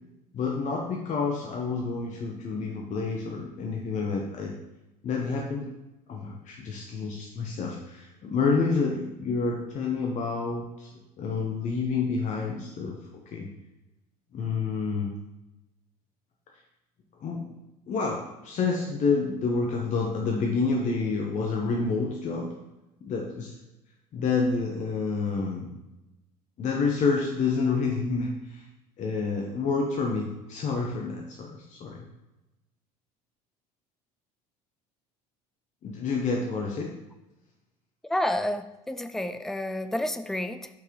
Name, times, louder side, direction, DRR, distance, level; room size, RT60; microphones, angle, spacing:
voice 1, 0.3-4.5 5.0-5.7 6.1-10.9 11.2-13.0 13.3-13.5 14.3-15.1 17.2-17.4 17.9-22.5 23.0-23.5 24.1-25.8 26.6-28.6 29.0-32.0 35.8-36.9, left 4 dB, 35° left, 0 dB, 1.1 m, -28 dB
voice 2, 38.1-40.7, left 1 dB, ahead, 9 dB, 0.4 m, -30 dB
8.9 x 5.9 x 3.1 m, 0.97 s
figure-of-eight pair, 65°, 20 cm